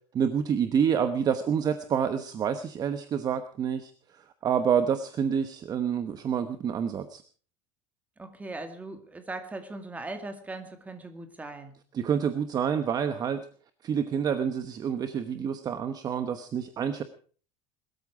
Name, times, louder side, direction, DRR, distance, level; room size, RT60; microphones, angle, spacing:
voice 1, 0.1-7.2 11.9-13.5 13.8-17.0, right 7 dB, 25° right, 10 dB, 1.0 m, -28 dB
voice 2, 8.2-11.7, right 2 dB, 10° right, 6 dB, 2.2 m, -39 dB
21.0 x 13.5 x 4.9 m, 0.43 s
cardioid pair, 165°, 15 cm